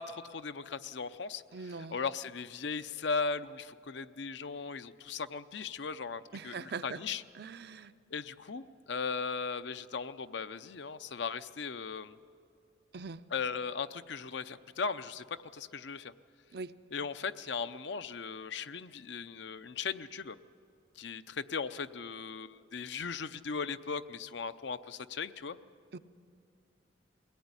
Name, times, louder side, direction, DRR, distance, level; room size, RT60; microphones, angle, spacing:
voice 1, 0.0-7.2 8.1-12.2 13.3-15.2 15.5-16.1 16.9-20.4 21.0-25.6, left 5 dB, 65° left, 12 dB, 0.6 m, -38 dB
voice 2, 1.5-2.0 6.3-7.0 7.4-7.9 12.9-13.2 16.5-16.7 25.9-26.0, right 4 dB, 55° right, 12 dB, 0.6 m, -41 dB
22.0 x 17.5 x 9.7 m, 2.3 s
head